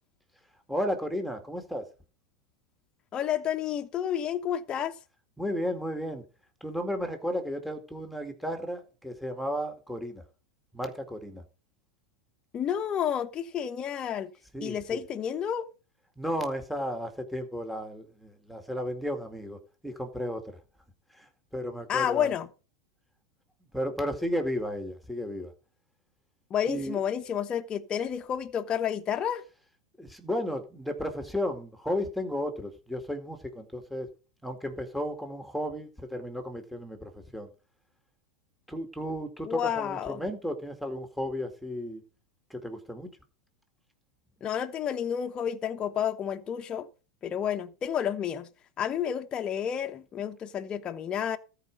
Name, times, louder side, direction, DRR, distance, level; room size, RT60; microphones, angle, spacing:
voice 1, 0.7-1.9 5.4-6.2 6.6-10.2 10.7-11.4 14.5-15.0 16.2-20.6 21.1-22.3 23.7-25.5 26.7-27.0 30.0-34.1 34.4-37.5 38.7-42.0 42.5-43.1, equal, ahead, 2.1 m, -34 dB
voice 2, 3.1-5.0 12.5-14.3 14.6-15.7 21.9-22.5 26.5-29.4 39.5-40.2 44.4-46.9 47.2-48.5 48.8-51.4, left 9 dB, 30° left, 1.0 m, -30 dB
13.5 x 5.0 x 6.6 m
hypercardioid pair, 110°, 3 cm